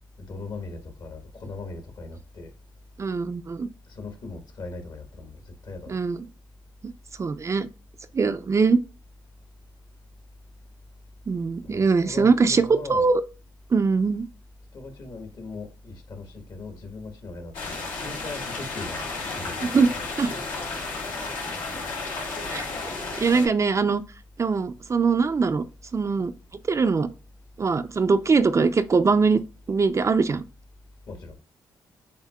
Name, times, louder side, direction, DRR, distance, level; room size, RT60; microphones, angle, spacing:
voice 1, 0.2-2.5 3.9-6.0 11.6-13.1 14.7-19.8 31.1-31.4, left 3 dB, 60° left, 1.3 m, -39 dB
voice 2, 3.0-3.7 5.9-6.2 6.8-6.9 7.2-7.7 8.1-8.8 11.3-13.2 13.7-14.3 19.7-19.9 20.2-20.3 22.5-22.7 23.2-24.0 24.4-25.6 25.9-26.3 26.7-27.1 27.6-29.4 29.7-30.4, right 4 dB, 35° right, 0.4 m, -22 dB
sound 1, 17.5-23.5, left 3 dB, 85° left, 1.7 m, -33 dB
7.2 x 2.7 x 2.3 m
supercardioid pair, 60°, 8 cm